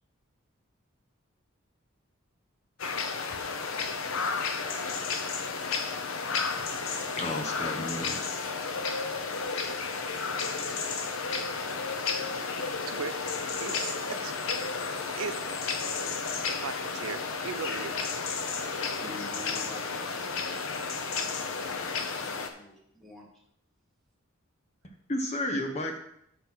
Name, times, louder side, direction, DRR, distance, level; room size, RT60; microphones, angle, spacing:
sound 1, 2.8-22.5, left 4 dB, 75° left, 0.8 m, -32 dB
voice 1, 7.2-8.2 25.1-26.0, left 1 dB, 30° left, 3 dB, 1.0 m, -32 dB
voice 2, 12.9-13.3 13.6-14.5 15.2-15.7 16.1-17.9, right 6 dB, 80° right, 10 dB, 0.6 m, -38 dB
voice 3, 19.0-23.4, left 1 dB, ahead, -3 dB, 1.8 m, -49 dB
6.1 x 5.7 x 6.1 m, 0.74 s
head